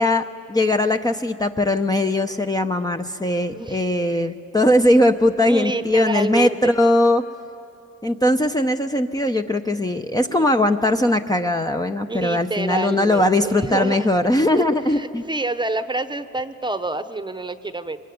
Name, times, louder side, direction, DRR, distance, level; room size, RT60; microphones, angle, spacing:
voice 1, 0.0-7.2 8.0-15.2, left 1 dB, 15° left, 5 dB, 0.8 m, -20 dB
voice 2, 3.5-4.3 5.5-6.6 10.3-10.5 12.1-14.1 14.6-18.0, right 2 dB, 15° right, 11 dB, 1.0 m, -28 dB
25.0 x 22.5 x 9.5 m, 2.6 s
cardioid pair, 90°, 30 cm